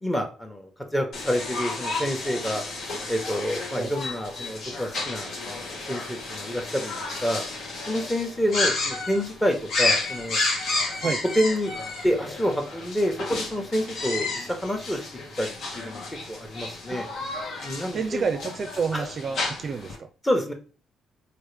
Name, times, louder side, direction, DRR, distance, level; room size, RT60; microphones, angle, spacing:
voice 1, 0.0-2.6 3.1-7.4 7.9-10.4 11.0-11.1 11.3-11.8 12.0-15.0 15.4-16.0 16.3-17.1 17.6-18.2 18.9-19.1 20.2-20.5, equal, 10° left, 4 dB, 0.9 m, -28 dB
sound 1, 1.1-20.0, left 3 dB, 70° left, 1.0 m, -31 dB
voice 2, 17.9-20.1, right 5 dB, 45° right, 8 dB, 0.4 m, -29 dB
3.5 x 2.5 x 3.3 m, 0.36 s
cardioid pair, 90°, 0 cm